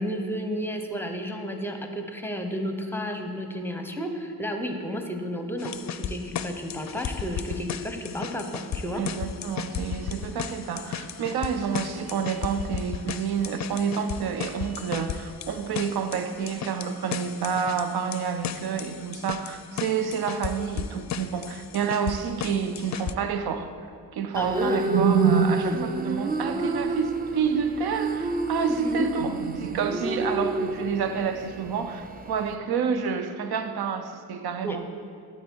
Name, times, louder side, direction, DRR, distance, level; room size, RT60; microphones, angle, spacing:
voice 1, 0.0-9.0 24.4-24.8 28.7-29.2 34.6-34.8, equal, 5° left, 4 dB, 0.8 m, -32 dB
sound 1, 5.6-23.1, left 8 dB, 50° left, 0.4 m, -35 dB
voice 2, 8.9-23.7 24.1-34.9, right 7 dB, 80° right, 9 dB, 0.6 m, -28 dB
sound 2, 24.3-32.6, right 2 dB, 25° right, 0.5 m, -30 dB
11.5 x 4.4 x 4.6 m, 2.2 s
cardioid pair, 70°, 37 cm